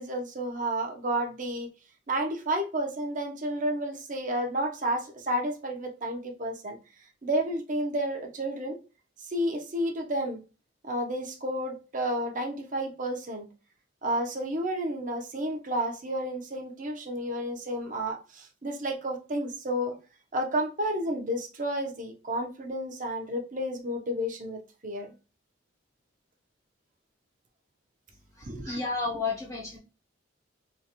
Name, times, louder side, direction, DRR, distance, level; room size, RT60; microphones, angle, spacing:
voice 1, 0.0-1.7 2.1-6.8 7.2-8.8 9.2-10.4 10.8-13.5 14.0-20.0 20.3-25.1 28.5-28.8, right 1 dB, 40° right, 0.8 m, -31 dB
voice 2, 28.4-29.8, left 4 dB, 15° left, 0.7 m, -32 dB
3.9 x 2.5 x 2.9 m
head